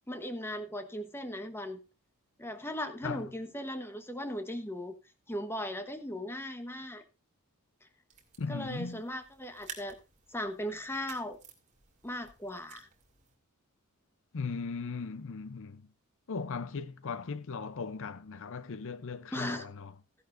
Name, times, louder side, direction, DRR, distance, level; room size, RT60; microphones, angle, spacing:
voice 1, 0.1-1.8 2.4-4.9 5.3-7.0 8.5-9.9 10.3-11.4 12.0-12.9 19.3-19.7, left 1 dB, 10° left, 1.2 m, -38 dB
sound 1, 8.1-13.4, right 5 dB, 35° right, 2.4 m, -52 dB
voice 2, 8.4-9.0 14.3-15.9 16.3-19.9, left 4 dB, 60° left, 0.6 m, -38 dB
15.0 x 11.0 x 2.6 m
head